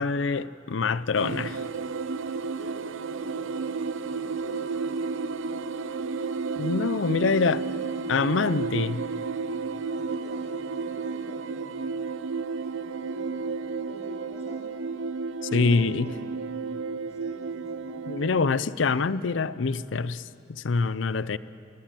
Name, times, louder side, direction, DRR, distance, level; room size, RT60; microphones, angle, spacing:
voice 1, 0.0-1.6 6.6-7.6 8.1-9.0 15.4-16.1 18.1-20.2 20.5-21.4, left 4 dB, 75° left, 17 dB, 0.5 m, -25 dB
sound 1, 1.2-18.6, right 4 dB, 90° right, 0.6 m, -32 dB
voice 2, 2.5-5.1 7.1-8.1 9.9-11.8 12.6-14.8 15.5-16.3 17.0-18.5, equal, 15° left, -3 dB, 3.4 m, -49 dB
22.0 x 19.0 x 9.0 m, 2.6 s
head